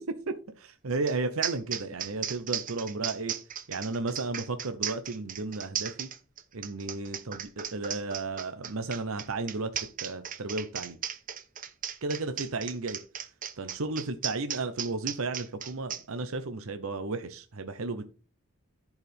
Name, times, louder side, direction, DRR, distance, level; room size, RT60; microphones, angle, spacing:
voice 1, 0.6-3.3 3.7-6.1 6.5-9.7 10.0-11.0 12.0-13.0 13.6-18.0, right 3 dB, 75° right, 8 dB, 0.8 m, -33 dB
sound 1, 1.1-1.2 1.4-16.0, right 9 dB, 40° right, 0.8 m, -36 dB
14.5 x 4.8 x 3.5 m, 0.34 s
head